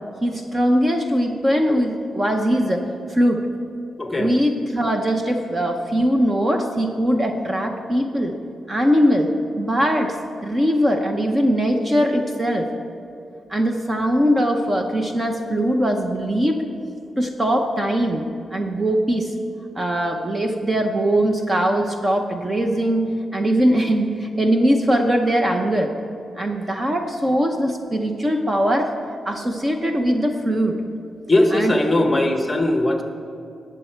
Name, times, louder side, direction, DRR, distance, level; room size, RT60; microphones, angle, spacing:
voice 1, 0.2-2.8 3.1-3.5 4.2-8.3 8.7-10.2 10.4-12.7 13.5-16.6 17.2-19.3 19.7-25.9 26.4-28.9 29.3-30.8 31.5-31.8, equal, 20° right, 4 dB, 0.7 m, -21 dB
voice 2, 4.0-4.3 31.3-33.0, left 1 dB, 15° left, 4 dB, 1.1 m, -19 dB
19.0 x 7.4 x 4.5 m, 2.7 s
wide cardioid pair, 150°, 0 cm